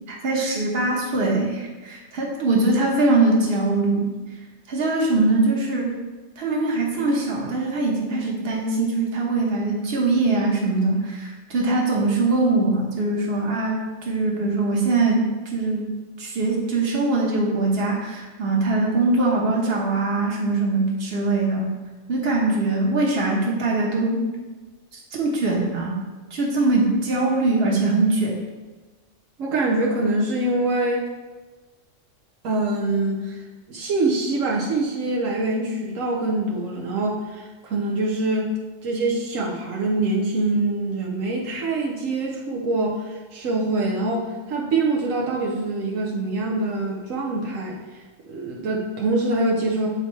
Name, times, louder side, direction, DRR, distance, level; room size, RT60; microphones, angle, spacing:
voice 1, 0.1-4.1 4.7-5.9 6.4-15.9 16.2-21.7 22.1-24.3 25.1-26.0 26.3-28.4, right 2 dB, 50° right, -2 dB, 1.4 m, -22 dB
voice 2, 29.4-31.1 32.4-33.4 33.7-47.8 48.3-49.9, right 2 dB, 85° right, -2 dB, 1.2 m, -24 dB
8.3 x 4.3 x 3.2 m, 1.3 s
omnidirectional pair, 1.3 m